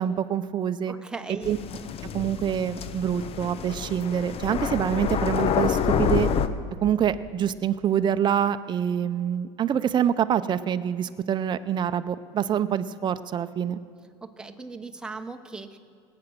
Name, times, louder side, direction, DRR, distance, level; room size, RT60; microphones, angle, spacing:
voice 1, 0.0-0.9 1.3-1.6 2.1-6.3 6.8-13.8, right 9 dB, 30° right, 11 dB, 0.6 m, -26 dB
voice 2, 0.9-1.6 14.2-15.8, right 3 dB, 5° right, 5 dB, 0.9 m, -38 dB
sound 1, 1.4-6.5, left 7 dB, 40° left, 0.8 m, -27 dB
18.5 x 8.5 x 6.2 m, 2.2 s
supercardioid pair, 95°, 15 cm